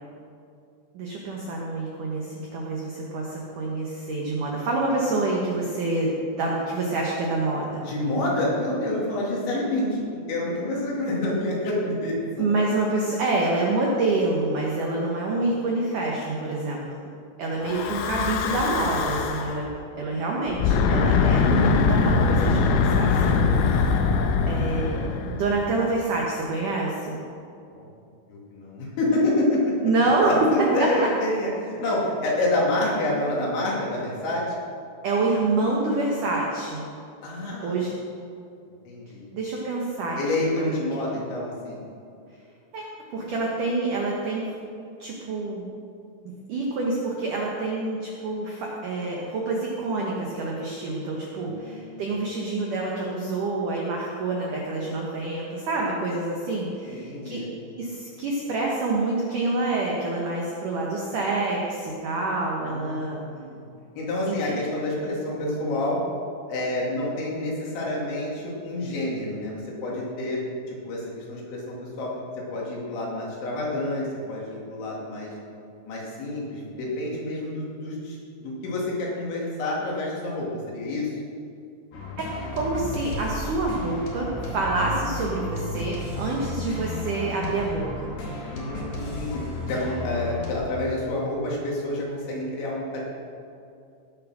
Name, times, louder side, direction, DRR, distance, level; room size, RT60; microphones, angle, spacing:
voice 1, 0.9-7.8 12.4-16.9 17.4-19.7 20.0-23.9 24.5-27.2 29.8-31.1 35.0-36.9 37.6-37.9 39.3-40.8 42.7-42.8 43.1-44.5 45.0-45.7 46.3-57.4 57.8-63.2 64.2-64.6 82.5-88.1, right 2 dB, 90° right, -2 dB, 1.8 m, -27 dB
voice 2, 7.9-12.2 17.7-17.8 27.7-27.9 28.3-29.9 30.3-34.4 37.2-37.7 38.9-39.3 40.2-41.8 51.4-52.1 56.8-57.5 62.7-63.6 64.0-66.0 66.5-70.4 70.7-72.1 72.5-75.3 75.9-81.1 88.5-89.4 89.7-93.0, left 1 dB, 65° left, -4 dB, 4.6 m, -28 dB
Breathing / Wind, 17.6-19.6 20.5-25.9, left 5 dB, 90° left, 3.4 m, -22 dB
sound 1, 81.9-90.5, left 2 dB, 50° left, 2.5 m, -33 dB
17.0 x 7.2 x 6.2 m, 2.5 s
omnidirectional pair, 5.8 m